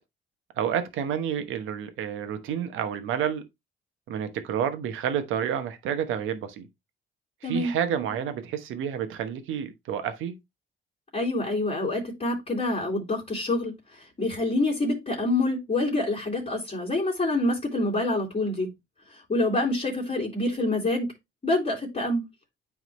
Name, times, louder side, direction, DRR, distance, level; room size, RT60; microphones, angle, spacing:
voice 1, 0.6-3.4 4.1-6.7 7.4-10.3, right 9 dB, 85° right, 1.1 m, -29 dB
voice 2, 11.1-13.7 14.2-18.7 19.3-21.1 21.4-22.2, left 2 dB, 30° left, 2.6 m, -26 dB
9.4 x 3.6 x 3.2 m
cardioid pair, 90°, 20 cm